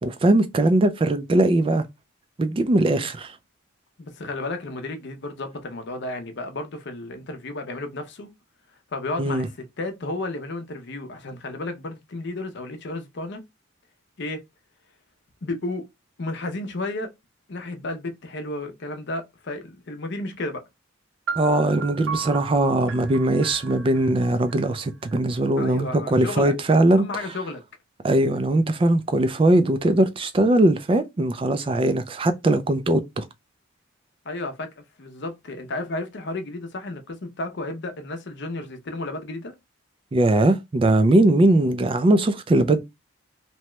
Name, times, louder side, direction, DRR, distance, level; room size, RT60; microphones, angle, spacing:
voice 1, 0.0-1.9 2.4-3.4 9.2-9.5 21.4-27.1 28.0-33.3 40.1-42.8, right 1 dB, 25° right, 0.3 m, -20 dB
voice 2, 4.0-8.3 8.9-13.4 14.2-14.4 15.4-15.9 16.2-17.1 17.5-20.6 25.6-26.5 26.9-27.6 34.2-39.5, left 2 dB, 55° left, 0.6 m, -32 dB
sound 1, 21.3-25.1, right 5 dB, 70° right, 0.7 m, -35 dB
2.8 x 2.2 x 3.0 m
head